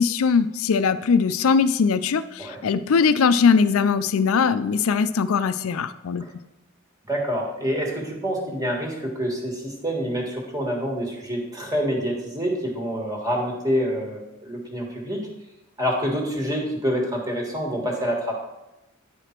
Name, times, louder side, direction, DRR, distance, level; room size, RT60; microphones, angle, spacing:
voice 1, 0.0-6.2, left 5 dB, 80° left, 13 dB, 0.4 m, -20 dB
voice 2, 7.1-15.3 15.8-18.4, equal, 15° right, 0 dB, 1.5 m, -27 dB
9.5 x 5.0 x 4.4 m, 0.95 s
head